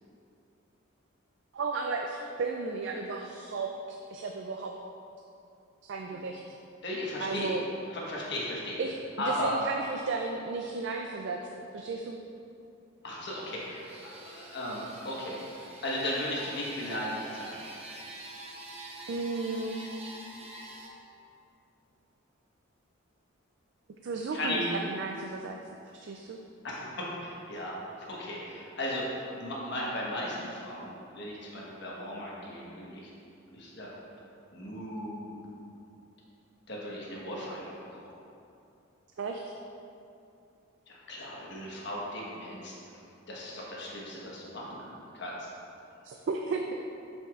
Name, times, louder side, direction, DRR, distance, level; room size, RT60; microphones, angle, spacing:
voice 1, 1.5-4.7 5.8-6.4 7.2-7.6 8.8-12.2 19.1-19.9 24.0-25.6 25.9-26.4 39.2-39.5 46.0-46.8, right 3 dB, 55° right, 2 dB, 0.3 m, -34 dB
voice 2, 6.8-7.5 7.9-8.8 9.2-9.5 13.0-15.4 15.8-17.6 24.3-24.7 26.6-27.8 28.1-29.1 29.4-33.1 33.5-33.9 34.5-35.4 36.7-38.1 40.9-42.7 43.3-44.8 45.1-45.5, left 1 dB, 55° left, -5 dB, 1.2 m, -36 dB
sound 1, 13.1-20.9, right 1 dB, 30° right, 0.7 m, -46 dB
7.0 x 6.1 x 2.4 m, 2.7 s
head